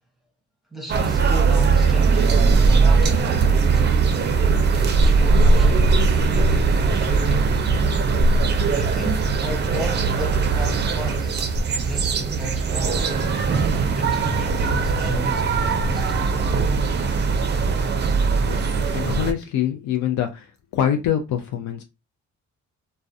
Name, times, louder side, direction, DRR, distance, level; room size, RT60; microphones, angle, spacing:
voice 1, 0.7-4.3 4.7-7.6 8.7-13.4 13.8-16.4, right 1 dB, ahead, 0.9 m, -34 dB
sound 1, 0.9-19.3, right 4 dB, 35° right, 0.4 m, -20 dB
voice 2, 18.4-21.8, left 10 dB, 75° left, 0.5 m, -25 dB
2.3 x 2.1 x 2.5 m
cardioid pair, 90°, 30 cm